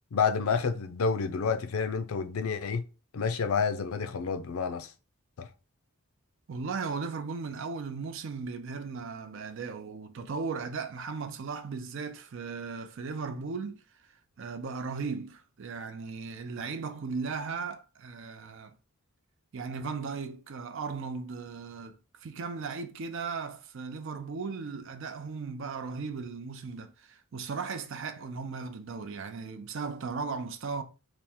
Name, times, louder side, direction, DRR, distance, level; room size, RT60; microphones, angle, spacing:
voice 1, 0.1-2.8 3.1-4.9 5.4-5.5, left 5 dB, 70° left, 0.5 m, -29 dB
voice 2, 6.5-18.8 19.5-30.8, right 4 dB, 60° right, 0.4 m, -37 dB
3.4 x 2.1 x 4.2 m
head